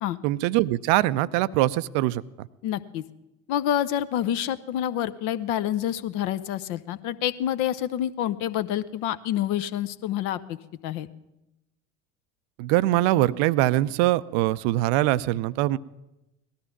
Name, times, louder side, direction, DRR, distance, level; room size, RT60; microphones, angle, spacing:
voice 1, 0.2-2.2 12.6-15.8, right 16 dB, 50° right, 17 dB, 0.5 m, -22 dB
voice 2, 2.6-3.0 3.5-10.6 10.8-11.1, left 11 dB, 50° left, 14 dB, 0.8 m, -27 dB
18.0 x 13.0 x 5.9 m, 0.95 s
figure-of-eight pair, 70°, 39 cm